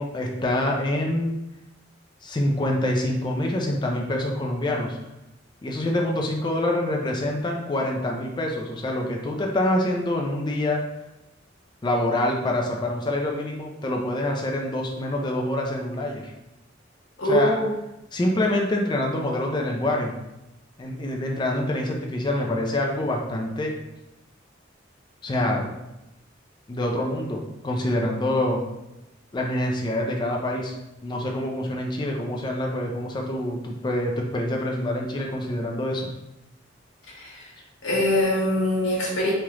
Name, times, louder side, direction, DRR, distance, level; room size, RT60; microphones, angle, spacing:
voice 1, 0.0-1.4 2.2-5.0 5.6-10.8 11.8-16.3 17.2-17.6 18.1-20.2 20.8-23.8 25.2-25.7 26.7-28.6 29.3-30.7 31.0-36.1, left 1 dB, 25° left, 1 dB, 0.4 m, -26 dB
voice 2, 17.2-17.7 37.1-37.5 37.8-39.3, left 1 dB, 80° left, -5 dB, 1.1 m, -23 dB
3.2 x 2.4 x 2.9 m, 0.94 s
head